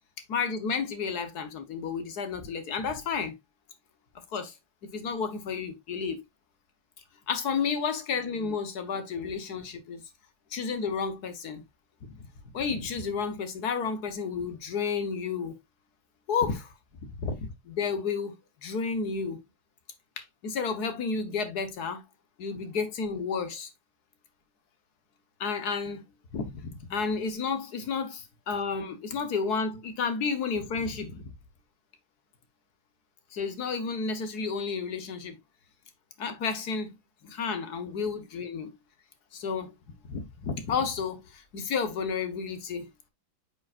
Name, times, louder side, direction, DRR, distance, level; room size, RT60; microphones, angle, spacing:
voice 1, 0.3-3.4 4.3-4.5 4.8-6.2 7.3-10.0 10.5-11.6 12.1-12.2 12.5-15.5 16.3-16.7 17.0-17.1 17.7-18.4 18.6-19.4 20.2-22.0 22.4-23.7 25.4-26.0 26.3-31.3 33.3-35.3 36.2-36.9 37.2-38.7 39.3-39.7 40.1-42.9, left 5 dB, 55° left, 1.5 m, -31 dB
8.7 x 5.2 x 2.4 m
omnidirectional pair, 2.2 m